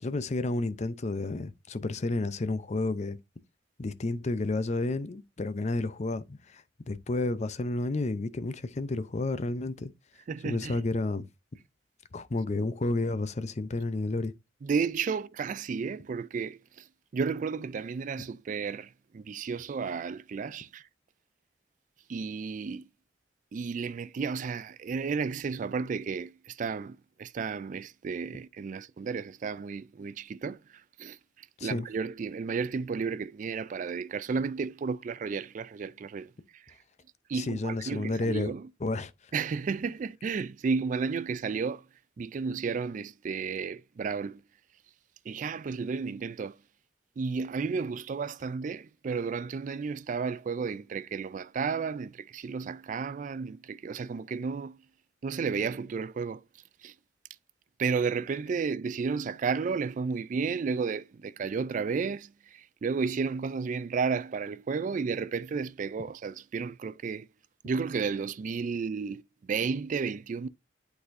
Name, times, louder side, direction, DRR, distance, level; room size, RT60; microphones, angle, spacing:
voice 1, 0.0-3.2 3.8-9.9 10.4-11.2 12.1-14.3 31.6-31.9 37.3-38.5 38.8-39.1, left 2 dB, 40° left, 0.6 m, -31 dB
voice 2, 10.3-10.8 14.6-16.8 17.1-20.8 22.1-22.9 23.5-36.7 37.3-38.7 39.3-41.9 42.2-44.4 45.3-46.6 47.2-54.8 55.2-56.4 56.8-56.9 57.8-67.3 67.6-69.2 69.5-70.5, right 5 dB, 45° right, 0.3 m, -32 dB
11.0 x 4.1 x 2.6 m
head